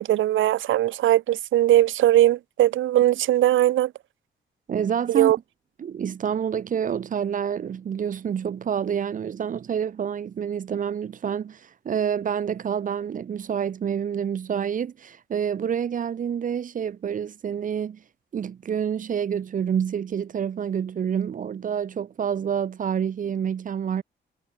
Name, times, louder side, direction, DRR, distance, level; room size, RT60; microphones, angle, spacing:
voice 1, 0.0-3.9 5.1-5.4, right 13 dB, 90° right, 1.1 m, -20 dB
voice 2, 4.7-5.3 5.8-18.0 18.3-24.0, right 8 dB, 45° right, 2.0 m, -28 dB
wide cardioid pair, 175°, 20 cm